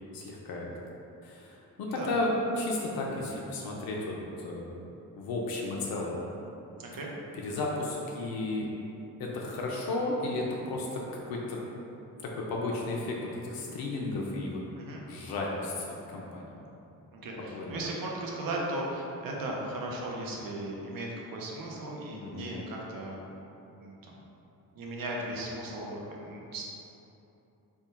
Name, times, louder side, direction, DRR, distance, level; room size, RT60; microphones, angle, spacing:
voice 1, 0.1-0.7 1.2-4.8 5.2-6.2 7.3-8.7 9.2-11.6 12.2-14.6 15.1-16.5 17.5-17.7 22.2-22.5, left 2 dB, 80° left, -2 dB, 0.6 m, -33 dB
voice 2, 6.8-7.1 14.7-15.0 17.1-23.2 23.7-24.1 24.7-26.6, right 1 dB, 70° right, -2 dB, 0.7 m, -37 dB
3.5 x 2.2 x 4.2 m, 2.9 s
cardioid pair, 130°, 35 cm